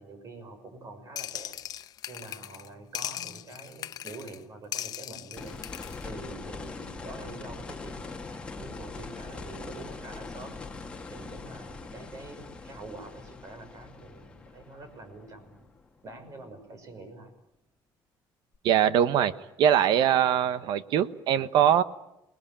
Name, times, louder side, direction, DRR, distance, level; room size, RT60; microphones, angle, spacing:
voice 1, 0.0-1.6 2.1-10.6 11.1-15.6 16.0-17.3, right 2 dB, 40° right, 9 dB, 5.8 m, -46 dB
sound 1, 1.2-2.7 2.9-4.4 4.7-6.0, left 11 dB, 50° left, 0.9 m, -38 dB
sound 2, 5.4-16.3 18.5-18.6, left 3 dB, 15° left, 2.1 m, -42 dB
voice 2, 18.6-19.3 19.6-21.8, right 10 dB, 65° right, 14 dB, 1.2 m, -22 dB
28.0 x 20.0 x 8.7 m, 0.87 s
cardioid pair, 150°, 8 cm